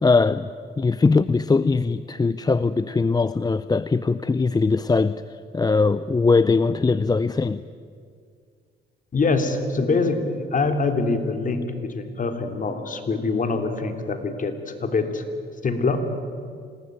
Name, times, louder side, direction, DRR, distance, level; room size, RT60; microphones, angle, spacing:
voice 1, 0.0-0.5 0.8-5.2 5.5-7.6, left 4 dB, 20° left, 15 dB, 0.6 m, -20 dB
voice 2, 9.1-15.2 15.6-16.0, left 3 dB, 40° left, 6 dB, 3.1 m, -24 dB
26.0 x 19.5 x 9.3 m, 2.2 s
cardioid pair, 90°, 20 cm